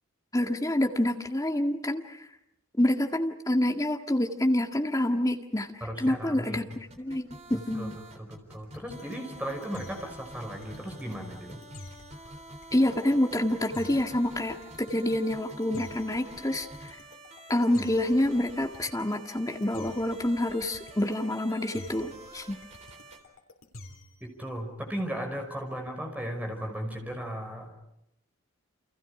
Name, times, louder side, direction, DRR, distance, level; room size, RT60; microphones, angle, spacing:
voice 1, 0.3-2.2 2.8-5.7 6.0-7.9 12.7-17.0 17.5-22.6, left 1 dB, 15° left, 3 dB, 1.9 m, -27 dB
voice 2, 5.8-6.6 7.5-7.9 8.2-11.6 24.2-27.7, equal, 5° right, 2 dB, 5.5 m, -36 dB
sound 1, 6.7-23.2, right 1 dB, 30° right, 3.6 m, -48 dB
sound 2, 8.6-24.3, left 1 dB, 70° left, 3.7 m, -48 dB
29.5 x 28.0 x 5.0 m, 0.84 s
head